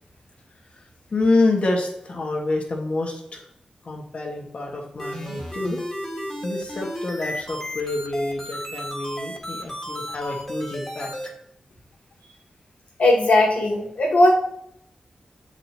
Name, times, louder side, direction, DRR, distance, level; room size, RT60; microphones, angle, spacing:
voice 1, 0.7-3.5 3.8-5.8 6.4-11.1, left 2 dB, 60° left, 0 dB, 1.7 m, -27 dB
sound 1, 5.0-11.3, equal, 15° left, 1.9 m, -33 dB
voice 2, 13.0-14.3, left 1 dB, 85° left, -3 dB, 2.0 m, -17 dB
7.9 x 4.9 x 3.0 m, 0.75 s
wide cardioid pair, 90°, 2 cm